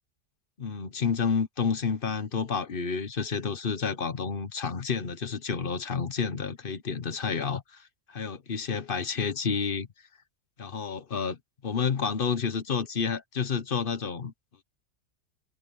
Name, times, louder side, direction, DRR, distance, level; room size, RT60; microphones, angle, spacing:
voice 1, 0.6-9.9 10.6-14.3, left 6 dB, 50° left, 1.3 m, -30 dB
omnidirectional pair, 1.3 m